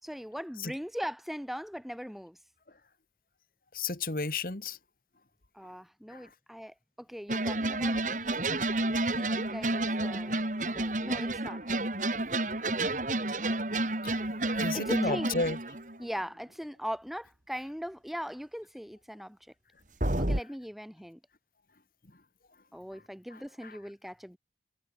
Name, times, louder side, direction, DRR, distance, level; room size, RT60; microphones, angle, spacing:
voice 1, 0.0-2.4 5.5-8.5 9.1-11.6 14.7-15.5 16.0-19.4 20.2-21.2 22.7-24.4, equal, ahead, 6.4 m, -40 dB
voice 2, 3.7-4.8 6.1-6.3 14.0-15.6 23.3-23.8, left 3 dB, 50° left, 1.8 m, -34 dB
sound 1, 7.3-16.1 20.0-20.4, right 2 dB, 45° right, 2.9 m, -30 dB
head